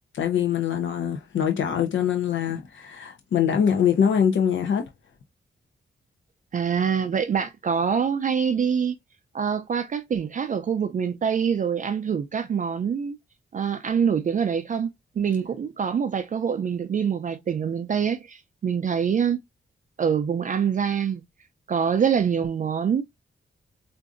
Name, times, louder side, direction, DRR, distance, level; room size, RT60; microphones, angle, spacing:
voice 1, 0.1-4.9, left 8 dB, 80° left, 0.6 m, -23 dB
voice 2, 6.5-8.9 9.3-13.2 13.5-14.9 15.2-19.4 20.0-21.2 21.7-23.0, right 7 dB, 40° right, 0.4 m, -25 dB
4.7 x 2.6 x 2.4 m
wide cardioid pair, 165°, 19 cm